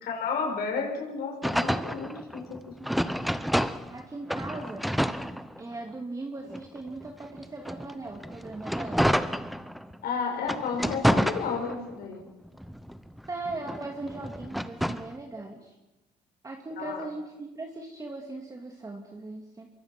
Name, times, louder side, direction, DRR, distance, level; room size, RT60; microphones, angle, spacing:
voice 1, 0.0-2.7 10.0-12.2 16.8-17.1, left 5 dB, 65° left, 2 dB, 6.8 m, -32 dB
sound 1, 1.4-4.0 4.3-5.9 6.5-10.0 10.4-12.0 12.5-15.1, equal, ahead, 0.9 m, -29 dB
voice 2, 3.9-4.9 5.6-9.1 13.3-15.7 16.4-19.7, right 2 dB, 20° right, 2 dB, 2.5 m, -39 dB
24.0 x 23.0 x 6.1 m, 1.0 s
cardioid pair, 110°, 17 cm